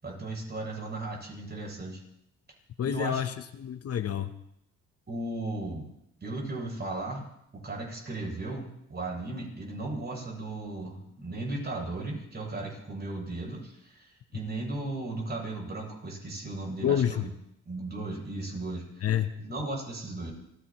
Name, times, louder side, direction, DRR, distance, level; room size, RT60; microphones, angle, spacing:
voice 1, 0.0-2.0 2.8-3.2 5.1-5.9 6.2-7.2 7.5-17.3 17.7-20.3, right 2 dB, 35° right, -1 dB, 7.8 m, -36 dB
voice 2, 2.8-4.3 16.8-17.3 19.0-19.4, left 9 dB, 55° left, 10 dB, 0.9 m, -28 dB
29.5 x 16.0 x 3.1 m, 0.78 s
cardioid pair, 90°, 30 cm